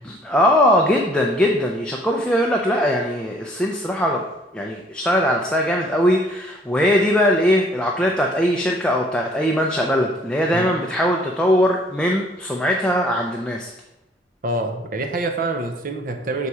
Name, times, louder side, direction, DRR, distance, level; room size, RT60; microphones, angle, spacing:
voice 1, 0.0-4.2 4.5-13.7, equal, 5° left, 0 dB, 0.4 m, -20 dB
voice 2, 14.4-16.5, right 2 dB, 50° right, 5 dB, 0.7 m, -26 dB
5.7 x 4.1 x 4.8 m, 0.95 s
head